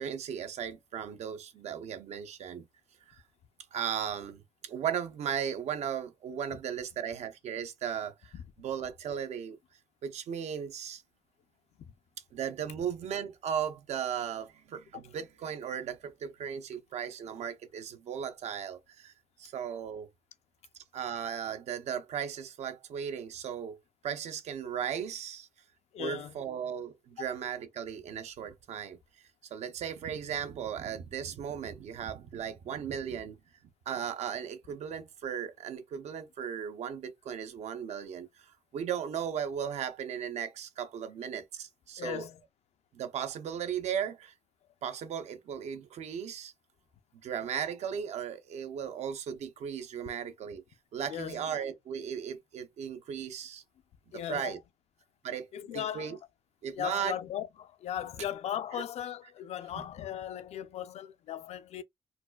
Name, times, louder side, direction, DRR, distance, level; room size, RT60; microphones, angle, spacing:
voice 1, 0.0-2.6 3.1-3.2 3.7-9.6 10.0-11.0 12.3-19.1 19.4-20.1 20.9-23.8 24.0-25.5 26.0-29.0 29.5-33.4 33.9-42.3 42.9-44.3 44.8-46.5 47.2-50.6 50.9-53.6 54.1-54.6 55.2-56.2 56.6-57.2 58.7-58.8, right 8 dB, 90° right, 0.7 m, -36 dB
voice 2, 25.9-26.3 42.0-42.4 51.1-51.6 54.1-54.6 55.5-56.2 56.7-61.8, left 10 dB, 75° left, 0.4 m, -37 dB
4.2 x 2.3 x 2.2 m
wide cardioid pair, 150°, 11 cm